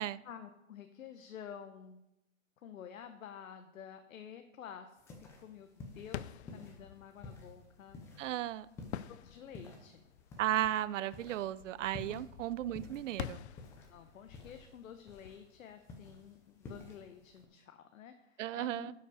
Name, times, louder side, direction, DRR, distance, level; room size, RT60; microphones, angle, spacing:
voice 1, 0.2-2.0 2.6-8.0 9.1-10.0 12.1-12.2 13.9-18.9, left 8 dB, 85° left, 7 dB, 0.9 m, -51 dB
sound 1, 5.0-17.4, left 3 dB, 5° left, 0.5 m, -53 dB
sound 2, 6.0-16.6, left 11 dB, 55° left, 0.5 m, -49 dB
voice 2, 8.2-8.7 10.4-13.4 18.4-18.9, right 12 dB, 70° right, 18 dB, 0.5 m, -35 dB
11.0 x 5.6 x 5.0 m, 0.91 s
hypercardioid pair, 150°, 39 cm